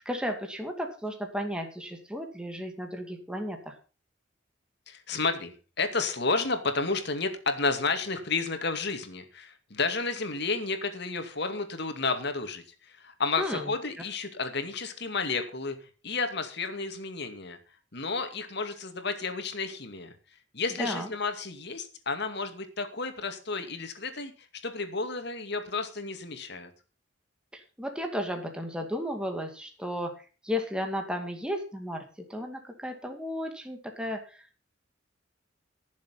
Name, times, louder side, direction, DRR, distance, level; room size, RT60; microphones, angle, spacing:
voice 1, 0.1-3.7 13.4-13.7 20.8-21.1 27.5-32.0 32.3-34.6, equal, 5° right, 3 dB, 2.2 m, -34 dB
voice 2, 4.9-17.6 17.9-20.1 20.5-26.7, left 4 dB, 60° left, 7 dB, 2.4 m, -31 dB
16.5 x 7.3 x 5.7 m, 0.36 s
head